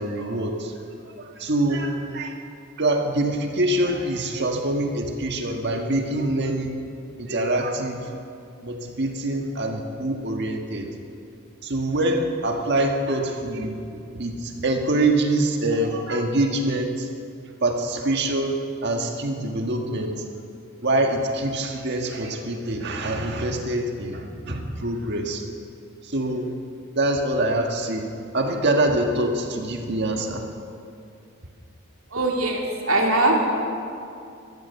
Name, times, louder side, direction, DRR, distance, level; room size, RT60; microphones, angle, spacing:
voice 1, 0.0-2.4 2.8-6.8 7.2-8.2 8.6-10.9 11.6-17.1 17.6-20.3 20.8-25.4 26.0-26.5 26.9-28.1 28.3-30.4, right 1 dB, 55° right, 3 dB, 1.5 m, -25 dB
voice 2, 32.1-33.4, right 2 dB, 80° right, 0 dB, 2.5 m, -21 dB
14.0 x 13.5 x 6.9 m, 2.5 s
head